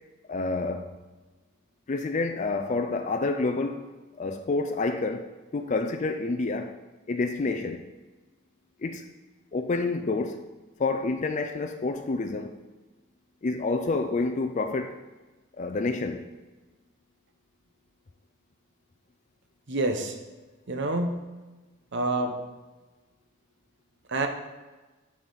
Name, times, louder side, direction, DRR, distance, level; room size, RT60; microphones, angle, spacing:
voice 1, 0.3-0.9 1.9-3.9 4.2-6.8 7.1-7.9 8.8-9.0 9.5-10.5 10.8-12.6 13.4-15.0 15.5-16.2, left 3 dB, 35° left, 0.4 m, -28 dB
voice 2, 19.7-20.2 20.7-21.2 21.9-22.4 24.1-24.3, right 2 dB, 60° right, 0.9 m, -27 dB
8.3 x 7.4 x 4.0 m
head